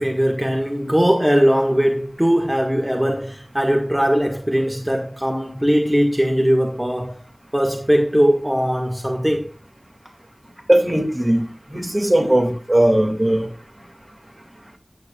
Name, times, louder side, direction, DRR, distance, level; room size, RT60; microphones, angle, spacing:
voice 1, 0.0-7.2 7.5-9.5, equal, 15° right, 1.6 m, -19 dB
voice 2, 10.7-11.4 11.7-13.5, right 1 dB, 35° right, 2.1 m, -18 dB
14.0 x 8.5 x 2.4 m
wide cardioid pair, 50°, 0 cm